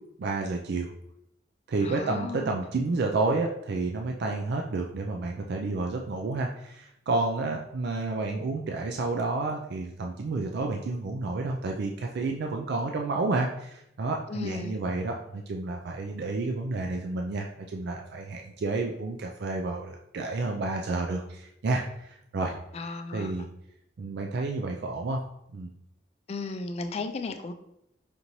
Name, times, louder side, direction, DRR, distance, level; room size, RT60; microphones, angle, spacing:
voice 1, 0.2-0.9 1.7-22.5 23.1-23.5 24.0-25.2 25.5-25.7, right 3 dB, 60° right, 2 dB, 0.4 m, -30 dB
voice 2, 1.8-2.6 14.3-14.8 22.7-23.5 26.3-27.5, left 3 dB, 35° left, 8 dB, 0.3 m, -35 dB
5.1 x 3.0 x 2.7 m, 0.79 s
head